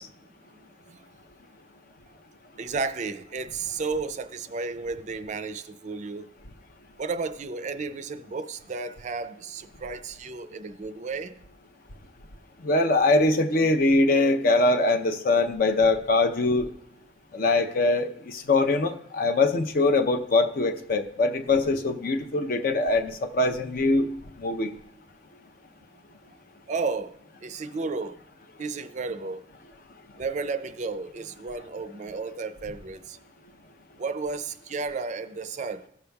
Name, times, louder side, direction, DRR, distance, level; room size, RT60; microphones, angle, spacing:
voice 1, 0.5-1.0 2.6-6.3 7.0-11.4 26.7-27.1 27.4-28.2 28.6-29.4 30.2-33.2 34.0-35.8, right 4 dB, 40° right, 11 dB, 0.4 m, -33 dB
voice 2, 12.6-16.7 17.3-24.1 24.4-24.7, left 2 dB, 50° left, 8 dB, 0.6 m, -22 dB
15.5 x 6.8 x 2.3 m, 0.74 s
head